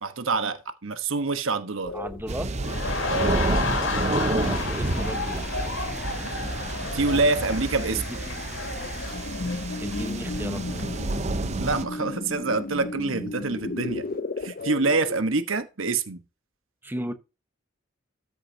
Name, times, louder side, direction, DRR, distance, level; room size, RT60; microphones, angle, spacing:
voice 1, 0.0-1.9 3.1-3.4 6.9-8.2 11.6-14.0 14.4-16.2, right 3 dB, 75° right, 1.1 m, -26 dB
sound 1, 1.8-15.2, left 3 dB, 45° left, 0.6 m, -36 dB
voice 2, 1.9-2.6 3.1-5.9 7.9-8.2 9.8-10.9 16.8-17.1, right 1 dB, 10° right, 1.0 m, -36 dB
sound 2, 2.3-11.8, right 2 dB, 35° right, 0.7 m, -30 dB
sound 3, 2.6-11.5 11.8-12.0, left 3 dB, 65° left, 2.3 m, -33 dB
13.5 x 6.8 x 2.7 m
head